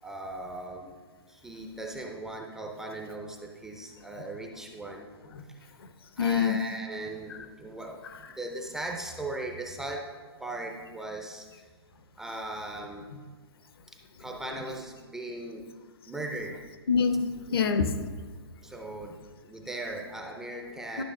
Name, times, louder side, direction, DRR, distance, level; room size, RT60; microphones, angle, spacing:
voice 1, 0.0-0.9 1.3-5.1 5.5-5.7 6.2-10.1 10.4-11.7 12.2-13.1 13.9-15.7 16.0-16.6 18.6-19.2 19.4-21.0, right 2 dB, 5° right, 1 dB, 0.4 m, -38 dB
voice 2, 6.2-6.6 7.3-7.4 16.9-18.1 21.0-21.1, left 6 dB, 65° left, 8 dB, 0.8 m, -26 dB
11.5 x 5.8 x 3.7 m, 1.5 s
hypercardioid pair, 155°, 14 cm